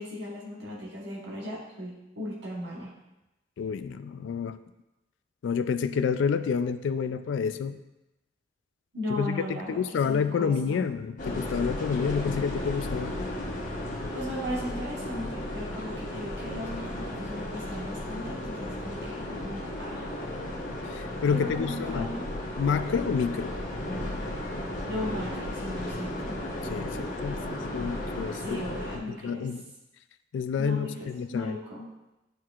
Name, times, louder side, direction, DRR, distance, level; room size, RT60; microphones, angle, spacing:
voice 1, 0.0-2.9 8.9-10.8 14.1-20.1 21.3-22.3 24.9-26.4 28.4-29.5 30.6-31.9, left 1 dB, 65° right, -5 dB, 1.2 m, -37 dB
voice 2, 3.6-4.6 5.4-7.8 9.2-13.1 20.9-22.1 22.6-23.5 26.7-28.6 29.1-29.6 30.3-31.6, left 6 dB, 75° left, 11 dB, 0.3 m, -29 dB
sound 1, 11.2-29.0, left 1 dB, 45° left, 1.1 m, -34 dB
9.0 x 4.6 x 2.4 m, 0.97 s
head